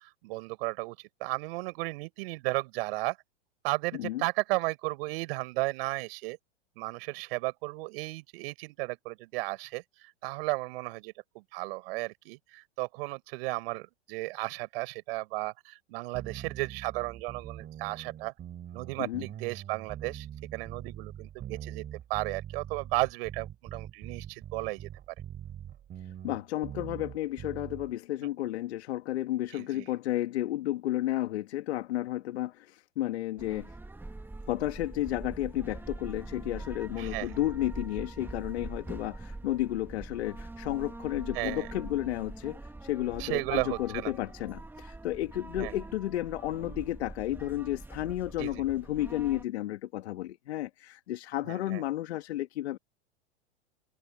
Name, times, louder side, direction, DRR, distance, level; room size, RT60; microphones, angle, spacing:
voice 1, 0.0-3.2 3.6-6.4 6.8-18.3 18.7-20.3 20.5-21.8 22.1-24.9 29.5-29.8 37.0-37.4 41.3-41.7 43.2-44.1 45.6-45.7 48.4-48.6 51.5-51.8, right 23 dB, 55° right, 5.5 m, -34 dB
voice 2, 3.9-4.2 19.0-19.2 26.2-33.7 34.5-52.8, left 14 dB, 70° left, 2.3 m, -32 dB
sound 1, 16.1-27.9, right 10 dB, 30° right, 5.0 m, -43 dB
sound 2, 33.4-49.4, right 2 dB, 5° right, 1.9 m, -43 dB
hypercardioid pair, 110°, 34 cm